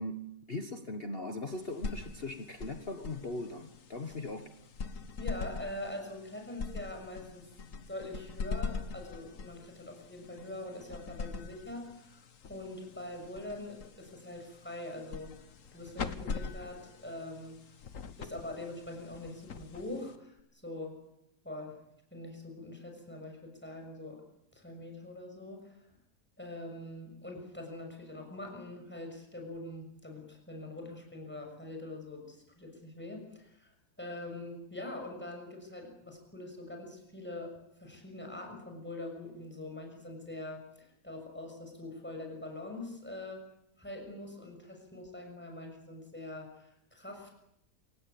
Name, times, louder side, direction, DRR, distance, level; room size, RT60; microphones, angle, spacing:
voice 1, 0.0-4.5, left 2 dB, 35° left, 6 dB, 1.6 m, -39 dB
sound 1, 1.5-20.4, left 5 dB, 55° left, 1.6 m, -43 dB
voice 2, 5.2-7.5 7.9-12.2 12.5-15.5 15.7-17.6 18.2-20.3 20.6-21.0 21.4-21.8 22.1-24.2 24.5-25.8 26.4-33.7 34.0-43.5 43.8-47.3, left 2 dB, 5° left, 2 dB, 6.5 m, -43 dB
28.0 x 17.0 x 8.6 m, 0.79 s
omnidirectional pair, 1.8 m